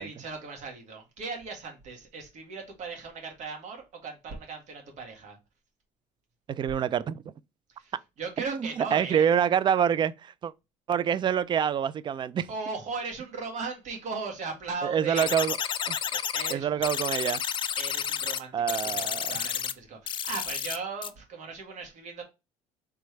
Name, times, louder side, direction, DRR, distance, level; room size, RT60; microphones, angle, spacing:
voice 1, 0.0-5.4 7.8-9.3 12.5-15.3 16.1-16.9 17.8-22.2, right 4 dB, 60° right, 1.6 m, -38 dB
voice 2, 6.5-7.2 8.5-10.5 10.9-12.5 14.8-15.6 15.9-16.0 16.5-17.4 18.5-19.4, right 8 dB, 35° right, 0.3 m, -26 dB
sound 1, 15.2-16.5 16.8-18.4 18.7-19.7 20.1-20.8 21.0-21.1, left 8 dB, 35° left, 0.4 m, -31 dB
3.3 x 3.2 x 4.5 m
supercardioid pair, 95°, 14 cm